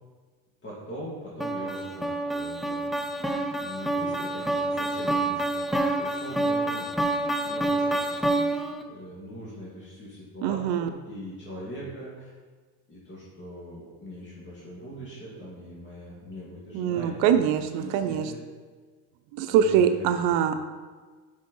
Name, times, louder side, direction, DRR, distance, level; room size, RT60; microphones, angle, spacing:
voice 1, 0.6-2.9 3.3-8.5 8.8-12.3 12.9-18.4 19.5-20.3, equal, 30° left, -8 dB, 2.5 m, -41 dB
sound 1, 1.4-8.8, right 2 dB, ahead, 0.5 m, -27 dB
voice 2, 10.4-10.9 16.7-18.3 19.4-20.6, right 8 dB, 90° right, 8 dB, 0.6 m, -23 dB
6.5 x 5.3 x 5.4 m, 1.4 s
cardioid pair, 120°, 38 cm